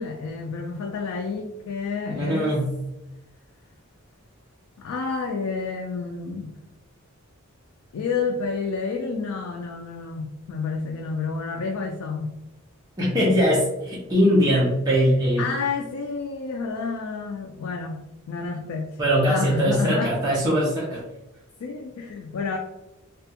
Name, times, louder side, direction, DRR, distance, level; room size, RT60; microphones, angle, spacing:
voice 1, 0.0-2.6 4.8-6.5 7.9-12.3 13.2-13.3 15.4-18.0 18.3-19.0 19.3-20.1 21.6-22.6, left 4 dB, 80° left, 2 dB, 0.4 m, -29 dB
voice 2, 2.1-2.8 13.0-15.5 19.0-21.0, equal, 20° right, -6 dB, 0.6 m, -21 dB
3.3 x 2.3 x 2.8 m, 0.93 s
head